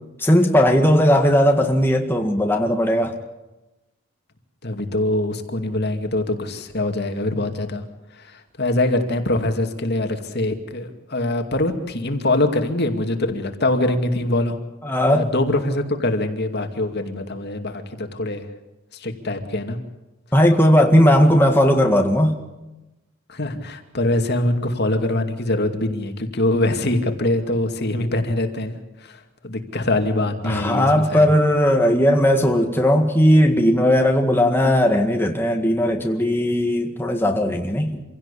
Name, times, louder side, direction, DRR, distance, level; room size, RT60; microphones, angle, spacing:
voice 1, 0.2-3.2 14.8-15.3 20.3-22.4 30.4-38.0, equal, 10° left, 1.8 m, -17 dB
voice 2, 4.6-7.8 8.1-14.6 15.1-18.5 18.9-19.8 23.3-31.3, left 1 dB, 50° left, 2.5 m, -23 dB
27.0 x 17.0 x 8.5 m
head